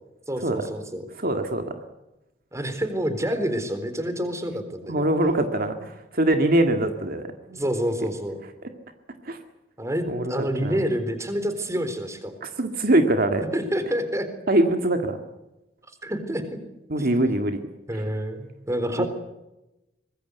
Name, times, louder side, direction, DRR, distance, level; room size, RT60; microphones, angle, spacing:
voice 1, 0.3-1.1 2.5-5.1 7.5-8.4 9.8-12.3 13.5-14.3 16.0-16.4 17.0-17.1 17.9-19.1, equal, 15° right, 9 dB, 3.9 m, -28 dB
voice 2, 1.2-1.6 4.9-7.6 9.3-9.4 10.1-10.3 10.6-10.8 12.4-13.4 14.5-15.2 16.9-17.6 19.0-19.1, right 1 dB, 55° right, 6 dB, 2.0 m, -23 dB
24.5 x 21.5 x 8.1 m, 0.96 s
head